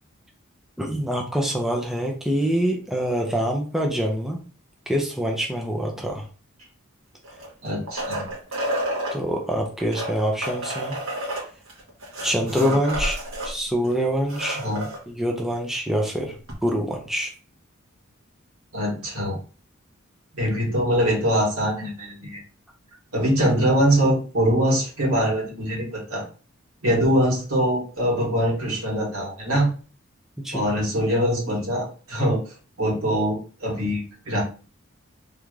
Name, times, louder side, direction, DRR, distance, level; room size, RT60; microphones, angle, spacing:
voice 1, 0.8-4.4 4.9-6.2 9.1-11.0 12.2-13.2 13.4-14.6 15.1-16.3 16.6-17.3 30.4-30.7, equal, ahead, 0 dB, 0.5 m, -25 dB
sound 1, 7.2-9.2 9.8-13.5 13.8-13.9 14.2-15.0 16.5-16.6, right 1 dB, 75° right, 1.5 m, -30 dB
voice 2, 7.6-8.2 12.5-12.7 14.6-14.9 18.7-19.4 20.4-22.4 23.1-26.2 26.8-29.7 30.5-32.4 32.8-34.4, equal, 90° right, -3 dB, 1.9 m, -23 dB
3.4 x 2.5 x 3.1 m, 0.37 s
head